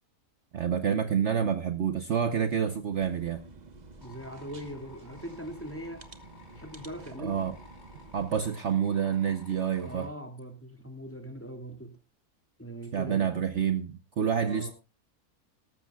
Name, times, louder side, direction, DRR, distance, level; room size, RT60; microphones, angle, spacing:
voice 1, 0.5-3.4 7.2-7.5 8.1-10.1 12.9-14.7, right 8 dB, 55° right, 1.1 m, -28 dB
sound 1, 2.9-8.5, right 2 dB, 30° right, 1.2 m, -50 dB
sound 2, 4.0-10.1, left 3 dB, 30° left, 2.7 m, -55 dB
voice 2, 4.0-6.0 6.6-7.6 9.8-11.9 12.6-13.3 14.4-14.7, right 1 dB, 10° left, 2.1 m, -41 dB
18.0 x 14.0 x 2.3 m
omnidirectional pair, 1.6 m